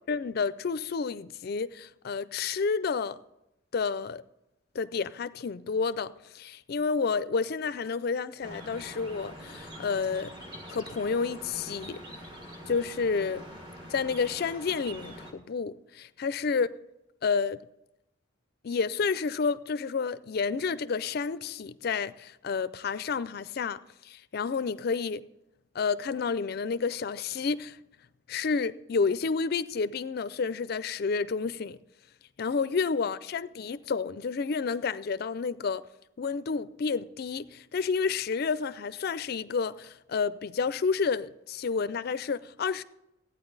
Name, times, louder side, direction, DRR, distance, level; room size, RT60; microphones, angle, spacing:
voice 1, 0.1-3.2 3.7-4.2 4.7-10.3 10.7-12.0 12.7-13.4 13.9-16.7 17.2-17.6 18.6-23.8 24.1-25.2 25.7-27.8 28.3-31.8 32.4-35.8 36.2-42.8, left 5 dB, 50° left, 0.4 m, -30 dB
sound 1, 8.4-15.3, equal, 25° right, 1.5 m, -44 dB
14.5 x 9.3 x 4.0 m
head